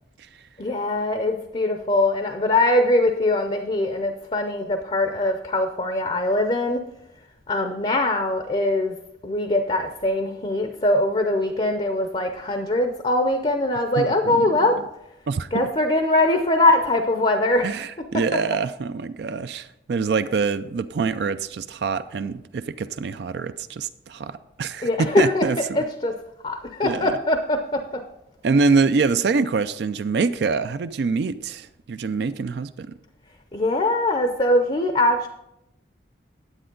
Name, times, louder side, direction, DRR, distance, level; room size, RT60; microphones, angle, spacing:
voice 1, 0.6-6.8 7.5-9.0 9.2-14.8 15.5-17.7 18.1-18.4 24.8-26.1 26.4-28.0 33.5-35.3, left 1 dB, 30° left, 6 dB, 0.6 m, -22 dB
voice 2, 14.0-14.6 15.3-15.7 17.6-25.8 26.8-27.2 28.4-32.9, right 4 dB, 60° right, 12 dB, 0.4 m, -25 dB
10.0 x 8.5 x 3.8 m, 0.85 s
head